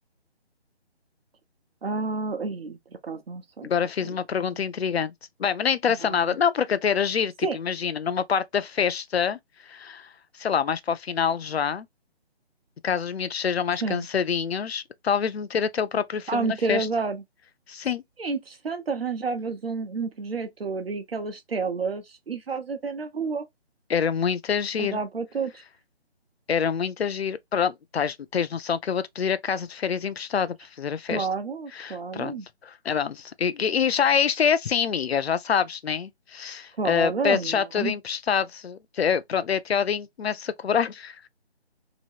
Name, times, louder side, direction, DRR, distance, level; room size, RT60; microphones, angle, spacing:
voice 1, 1.8-2.8 3.0-3.7 4.0-4.1 6.0-6.3 7.4-7.6 13.8-14.1 16.3-17.2 18.2-23.5 24.8-25.6 31.1-32.5 36.8-38.0, right 4 dB, 60° right, 0.8 m, -30 dB
voice 2, 3.6-5.1 5.4-10.1 10.4-11.9 12.8-16.9 17.7-18.0 23.9-25.0 26.5-31.3 31.7-32.3 32.6-41.2, left 7 dB, 70° left, 0.5 m, -26 dB
3.0 x 2.7 x 2.8 m
hypercardioid pair, 170°, 33 cm